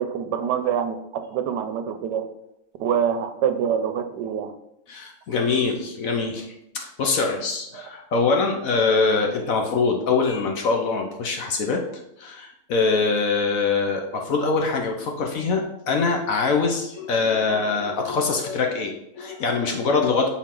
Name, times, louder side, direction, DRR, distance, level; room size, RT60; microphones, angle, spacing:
voice 1, 0.0-2.3 2.8-4.5 7.7-7.8, right 8 dB, 80° right, 9 dB, 1.2 m, -25 dB
voice 2, 4.9-11.8 12.2-20.3, left 4 dB, 65° left, 2 dB, 1.0 m, -23 dB
6.2 x 4.1 x 3.7 m, 0.81 s
omnidirectional pair, 1.9 m